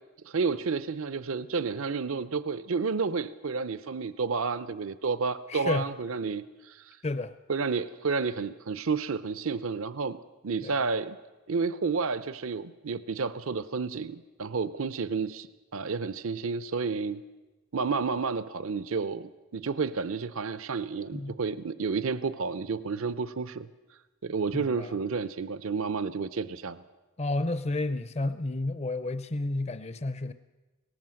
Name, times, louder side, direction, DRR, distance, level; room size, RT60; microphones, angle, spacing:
voice 1, 0.2-7.0 7.5-10.2 10.4-11.2 11.5-17.2 17.7-23.7 24.2-26.8, right 4 dB, 70° right, 15 dB, 0.6 m, -31 dB
voice 2, 5.5-5.8 7.0-7.3 10.6-10.8 21.1-21.4 24.5-24.9 27.2-30.3, left 2 dB, 30° left, 12 dB, 0.5 m, -31 dB
19.0 x 18.0 x 7.7 m, 1.2 s
head